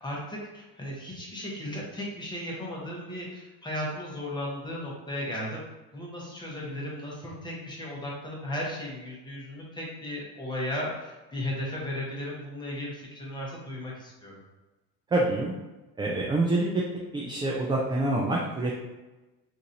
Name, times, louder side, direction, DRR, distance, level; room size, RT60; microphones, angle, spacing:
voice 1, 0.0-5.6 5.9-14.4, left 1 dB, 10° left, -4 dB, 1.0 m, -35 dB
voice 2, 15.1-15.6 16.0-16.7 17.1-18.8, right 2 dB, 15° right, -3 dB, 0.3 m, -26 dB
2.9 x 2.7 x 3.8 m, 1.1 s
cardioid pair, 140°, 35 cm